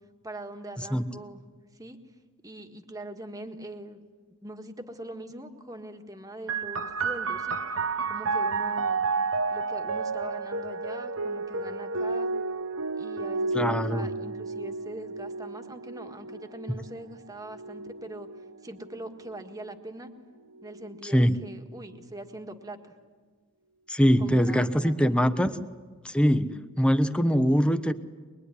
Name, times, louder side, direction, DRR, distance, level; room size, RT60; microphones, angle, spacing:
voice 1, 0.2-1.4 1.7-2.0 2.4-4.0 4.4-7.6 8.1-9.0 9.5-12.3 13.0-18.3 18.6-20.1 20.6-22.9 24.2-25.2, right 1 dB, 15° right, 5 dB, 1.7 m, -42 dB
sound 1, 6.5-19.7 20.6-21.4, right 4 dB, 75° right, 0.9 m, -32 dB
voice 2, 13.5-14.1 21.0-21.4 23.9-25.6 26.0-27.9, equal, 5° left, 10 dB, 1.0 m, -23 dB
23.0 x 22.5 x 9.9 m, 1.5 s
head